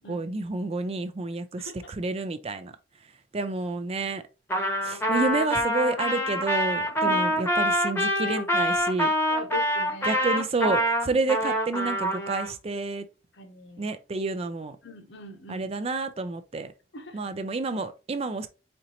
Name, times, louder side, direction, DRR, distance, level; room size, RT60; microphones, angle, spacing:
voice 1, 0.1-2.7 3.3-4.2 4.8-9.1 10.0-13.1 13.8-14.8 15.5-16.7 17.1-18.5, right 3 dB, 30° right, 0.4 m, -29 dB
voice 2, 1.6-1.9 7.0-7.2 9.3-10.2 13.3-13.9 14.8-15.7 16.9-17.2, left 3 dB, 75° left, 0.9 m, -41 dB
Trumpet, 4.5-12.5, equal, 10° left, 0.9 m, -25 dB
4.3 x 3.9 x 2.9 m
head